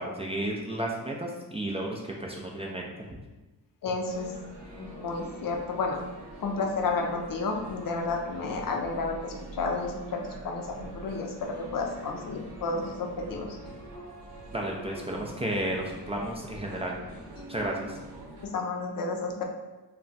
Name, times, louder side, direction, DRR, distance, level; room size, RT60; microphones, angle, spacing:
voice 1, 0.0-3.2 14.5-17.0 17.5-18.0, right 1 dB, 15° right, -2 dB, 0.4 m, -33 dB
voice 2, 3.8-4.3 4.8-6.0 6.4-13.6 18.4-19.4, left 3 dB, 55° left, 2 dB, 0.5 m, -31 dB
sound 1, 4.0-18.5, right 1 dB, 90° right, 0.8 m, -44 dB
2.3 x 2.2 x 3.9 m, 1.2 s
cardioid pair, 70°, 40 cm